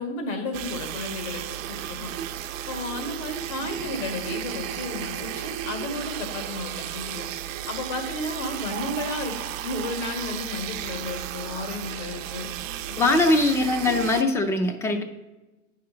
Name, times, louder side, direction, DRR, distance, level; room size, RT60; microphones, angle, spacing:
voice 1, 0.0-1.4 1.7-2.1 2.7-7.3 7.7-9.3 9.6-12.5 13.0-13.2, left 2 dB, 80° left, 5 dB, 1.9 m, -33 dB
sound 1, 0.5-14.2, right 11 dB, 90° right, 0.7 m, -34 dB
voice 2, 13.0-15.0, left 2 dB, 10° left, 7 dB, 0.4 m, -21 dB
9.4 x 5.7 x 3.8 m, 1.1 s
supercardioid pair, 145°, 38 cm